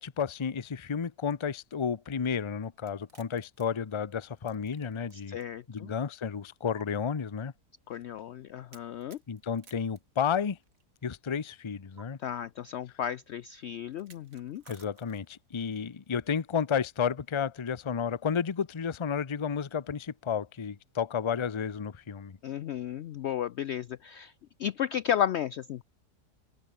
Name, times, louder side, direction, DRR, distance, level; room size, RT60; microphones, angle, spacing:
voice 1, 0.0-5.4 5.7-7.5 9.3-10.6 11.0-12.2 14.7-22.4, left 7 dB, 35° left, 0.4 m, -32 dB
sound 1, 2.8-5.4 5.8-5.9 6.8-6.9 8.7-10.8 12.0-12.1 13.9-15.4, right 4 dB, 55° right, 3.4 m, -58 dB
voice 2, 5.3-5.9 7.9-9.2 12.2-14.6 22.4-24.3 24.6-25.8, left 10 dB, 80° left, 0.6 m, -33 dB
open air
omnidirectional pair, 1.7 m